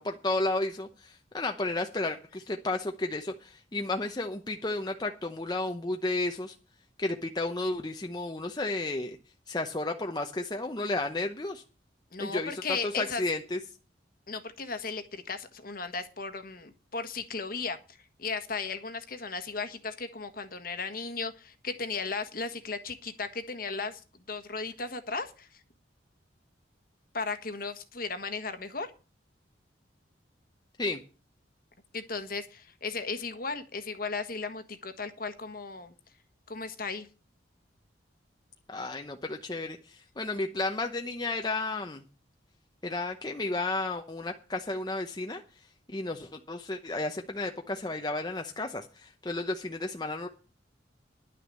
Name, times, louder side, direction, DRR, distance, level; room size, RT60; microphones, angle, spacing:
voice 1, 0.0-6.5 7.0-9.2 9.5-11.6 12.2-13.6 30.8-31.0 38.7-42.0 42.8-45.4 45.9-50.3, left 2 dB, 20° left, 4 dB, 0.8 m, -32 dB
voice 2, 12.1-13.2 14.3-25.6 27.1-28.9 31.9-35.9 36.5-37.1, left 4 dB, 50° left, 9 dB, 1.4 m, -36 dB
11.0 x 6.2 x 8.3 m, 0.34 s
head